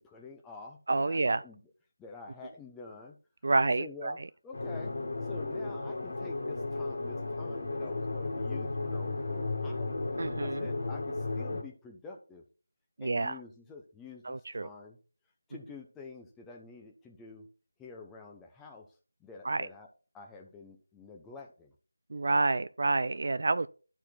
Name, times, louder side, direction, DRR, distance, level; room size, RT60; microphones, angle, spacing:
voice 1, 0.0-1.6 2.0-3.2 3.6-4.2 4.4-4.9 5.2-9.9 10.4-12.4 13.0-15.0 15.5-17.5 17.8-18.9 19.2-19.9 20.1-21.7, left 3 dB, 5° left, 0.8 m, -48 dB
voice 2, 0.9-1.4 3.4-4.3 10.2-10.7 13.0-13.4 14.2-14.7 19.4-19.7 22.1-23.7, right 3 dB, 50° right, 0.3 m, -29 dB
sound 1, 4.5-11.6, left 3 dB, 50° left, 2.2 m, -34 dB
11.5 x 4.5 x 4.4 m
figure-of-eight pair, 165°, 0 cm